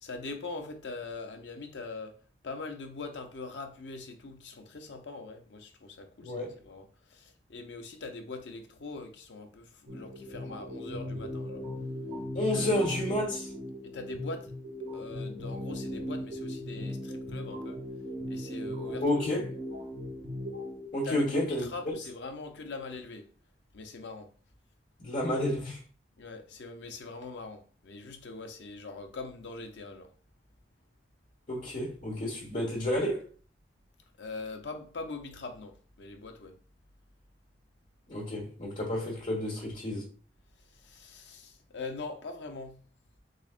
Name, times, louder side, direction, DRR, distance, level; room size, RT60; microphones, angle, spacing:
voice 1, 0.0-2.2 2.4-11.6 12.5-12.8 13.8-14.5 14.9-17.8 18.3-19.0 21.0-23.3 23.7-24.3 26.2-30.1 32.8-32.9 34.2-36.6 40.6-42.8, left 3 dB, 90° left, 0.6 m, -42 dB
voice 2, 6.2-6.5 12.3-13.5 19.0-19.4 20.9-21.9 25.0-25.8 31.5-33.3 38.1-40.1, left 1 dB, 45° left, 1.2 m, -30 dB
sound 1, 9.9-20.9, left 1 dB, 85° right, 1.1 m, -38 dB
6.3 x 2.1 x 2.4 m
head